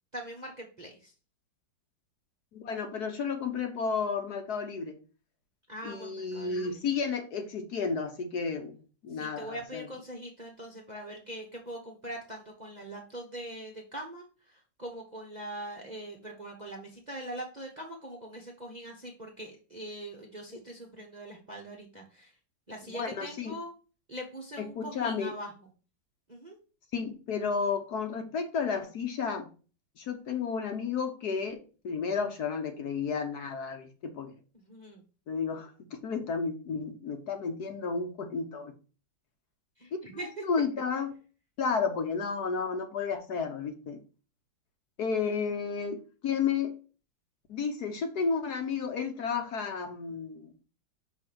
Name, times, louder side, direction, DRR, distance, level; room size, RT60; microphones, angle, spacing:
voice 1, 0.1-1.1 5.7-6.7 9.1-22.3 22.7-23.7 24.1-25.5 26.3-26.6 34.6-35.0 39.8-40.4, right 1 dB, 30° right, 0 dB, 0.9 m, -42 dB
voice 2, 2.5-5.0 5.8-8.8 9.0-9.9 20.5-20.6 22.9-23.5 24.6-25.3 26.9-29.5 30.0-34.3 35.3-38.7 40.4-41.1 41.6-44.0 45.0-46.8 47.5-50.5, left 5 dB, 60° left, 5 dB, 1.3 m, -32 dB
6.1 x 3.5 x 6.0 m, 0.36 s
omnidirectional pair, 2.1 m